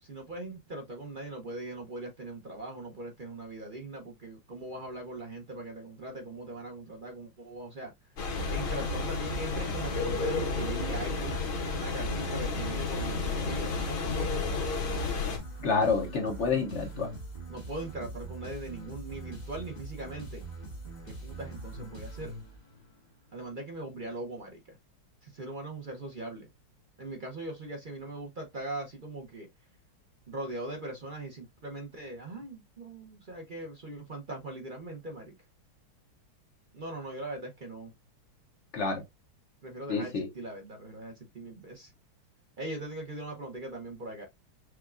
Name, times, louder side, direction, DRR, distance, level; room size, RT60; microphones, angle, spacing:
voice 1, 0.0-7.9 8.5-11.4 11.7-14.3 17.5-20.4 21.0-22.3 23.3-24.8 25.2-26.5 27.0-29.5 30.3-35.4 36.7-37.9 39.6-41.9 42.6-44.2, right 2 dB, 55° right, 0.5 m, -40 dB
sound 1, 8.2-15.4, left 4 dB, 80° left, 2.1 m, -32 dB
sound 2, 8.4-22.9, right 2 dB, 25° left, 1.1 m, -43 dB
voice 2, 15.6-17.1 38.7-39.0 39.9-40.3, left 4 dB, 65° left, 0.7 m, -28 dB
6.3 x 2.3 x 2.4 m
omnidirectional pair, 2.3 m